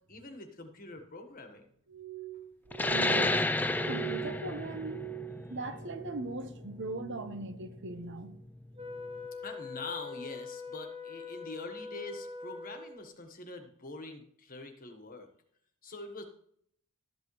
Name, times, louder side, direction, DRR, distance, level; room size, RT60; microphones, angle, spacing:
voice 1, 0.1-1.7 9.4-15.3 15.8-16.2, left 3 dB, 40° left, 1.4 m, -44 dB
Glass, 1.9-6.5 6.7-7.4 7.8-8.3 8.9-9.2, right 16 dB, 90° right, 1.6 m, -43 dB
sound 1, 2.7-7.9, left 2 dB, 10° left, 0.3 m, -32 dB
voice 2, 2.9-3.4 3.9-5.1 5.5-8.3, right 2 dB, 55° right, 1.1 m, -39 dB
Wind instrument woodwind instrument, 8.8-13.1, left 4 dB, 25° right, 1.2 m, -43 dB
13.0 x 8.4 x 3.2 m
head